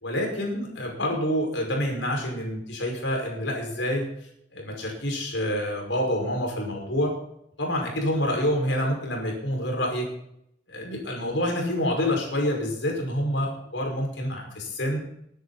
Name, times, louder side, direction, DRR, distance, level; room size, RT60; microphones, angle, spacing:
voice 1, 0.0-4.1 4.5-7.1 7.6-10.1 10.7-15.0, equal, 80° left, 0 dB, 5.5 m, -27 dB
22.5 x 10.5 x 4.2 m, 0.74 s
head